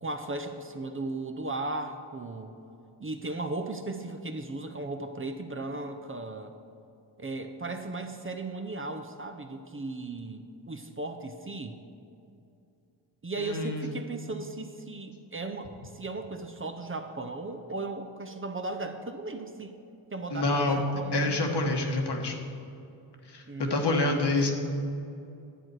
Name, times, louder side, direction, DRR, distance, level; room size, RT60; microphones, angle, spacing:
voice 1, 0.0-2.5 3.0-6.5 7.2-11.8 13.2-19.8 20.1-21.5 23.5-24.5, right 2 dB, 25° right, 6 dB, 0.7 m, -36 dB
voice 2, 13.4-13.9 20.3-20.8 21.1-22.4 23.3-24.5, left 2 dB, 60° left, 3 dB, 1.4 m, -27 dB
10.0 x 7.3 x 4.8 m, 2.6 s
cardioid pair, 55°, 47 cm